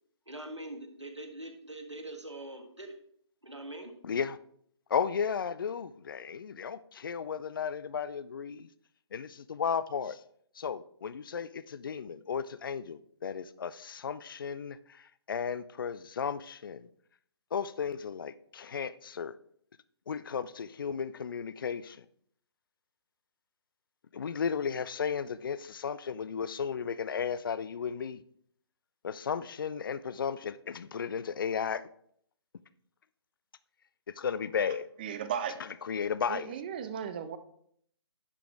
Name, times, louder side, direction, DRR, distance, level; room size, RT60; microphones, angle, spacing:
voice 1, 0.3-3.0 3.4-3.9, right 1 dB, 90° right, 1.5 m, -43 dB
voice 2, 4.0-4.4 4.9-8.7 9.1-10.2 10.5-16.9 17.5-19.4 20.1-22.1 24.1-28.2 29.0-31.9 34.2-34.9 35.8-36.5, left 7 dB, 50° left, 0.4 m, -34 dB
voice 3, 35.0-35.6 36.3-37.4, right 8 dB, 20° right, 0.4 m, -35 dB
10.5 x 4.9 x 3.5 m
figure-of-eight pair, 135°, 15 cm